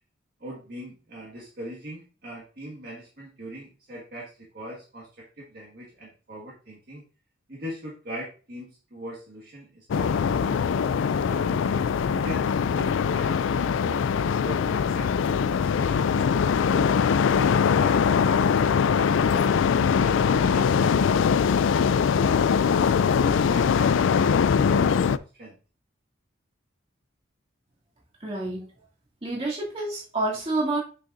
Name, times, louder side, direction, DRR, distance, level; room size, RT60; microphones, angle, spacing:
voice 1, 0.4-7.0 7.5-10.9 11.2-11.6 12.1-15.1 15.5-16.9 17.3-18.4 18.9-22.8 23.2-25.6, equal, 50° right, -4 dB, 1.8 m, -41 dB
sound 1, 9.9-25.2, left 6 dB, 70° left, 0.3 m, -22 dB
voice 2, 28.2-28.7 29.2-30.8, right 2 dB, 30° right, -5 dB, 2.6 m, -28 dB
8.4 x 6.5 x 2.6 m, 0.35 s
head